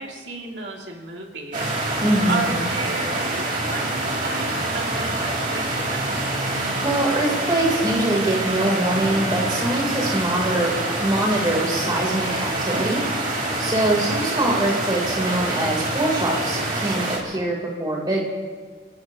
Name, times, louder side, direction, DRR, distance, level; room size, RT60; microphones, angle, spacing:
voice 1, 0.0-2.0 2.3-6.3 13.9-14.1, right 3 dB, 85° right, -1 dB, 2.7 m, -33 dB
sound 1, 1.5-17.2, right 2 dB, 45° right, 3.0 m, -26 dB
voice 2, 2.0-2.5 6.8-10.7 11.0-13.0 13.6-18.3, right 1 dB, 25° right, -2 dB, 3.7 m, -23 dB
29.5 x 16.0 x 3.0 m, 1.6 s
head